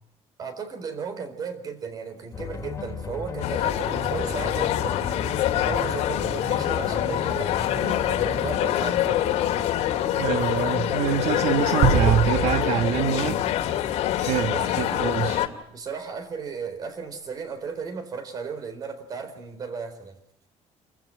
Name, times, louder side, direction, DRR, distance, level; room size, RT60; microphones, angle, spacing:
voice 1, 0.4-5.3 5.6-9.2 14.5-14.7 15.7-20.2, right 5 dB, 35° right, 4.1 m, -35 dB
sound 1, 2.3-8.6, left 4 dB, 25° left, 3.0 m, -35 dB
sound 2, 3.4-15.5, left 12 dB, 65° left, 2.4 m, -25 dB
voice 2, 10.2-13.4 14.2-15.4, right 10 dB, 65° right, 1.3 m, -25 dB
sound 3, 11.8-14.3, right 6 dB, 90° right, 4.6 m, -25 dB
29.5 x 15.0 x 8.9 m
cardioid pair, 170°, 12 cm